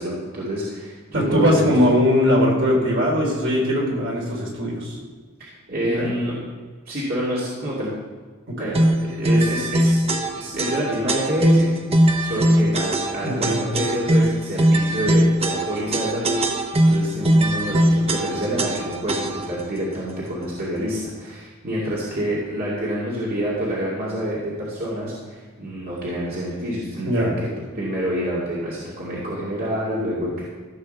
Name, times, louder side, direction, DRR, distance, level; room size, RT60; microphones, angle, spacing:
voice 1, 0.0-1.6 5.4-6.4 6.9-7.9 8.6-10.0 10.4-11.7 12.2-27.5 27.7-30.4, equal, 50° right, -7 dB, 2.5 m, -27 dB
voice 2, 1.1-5.0 5.8-6.1 8.5-8.8 13.2-13.6 15.1-15.2 27.1-27.3, equal, 65° right, -1 dB, 3.5 m, -20 dB
sound 1, 8.7-19.6, right 1 dB, 30° right, 0.8 m, -20 dB
15.0 x 5.5 x 6.7 m, 1.5 s
head